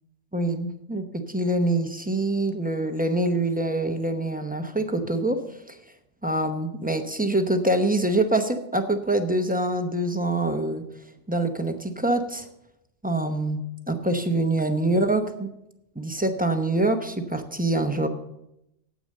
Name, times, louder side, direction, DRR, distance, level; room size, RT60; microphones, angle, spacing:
voice 1, 0.3-5.8 6.2-10.8 11.3-12.5 13.0-15.5 16.0-18.1, right 2 dB, 10° right, 6 dB, 0.8 m, -25 dB
9.0 x 8.7 x 6.5 m, 0.84 s
omnidirectional pair, 1.2 m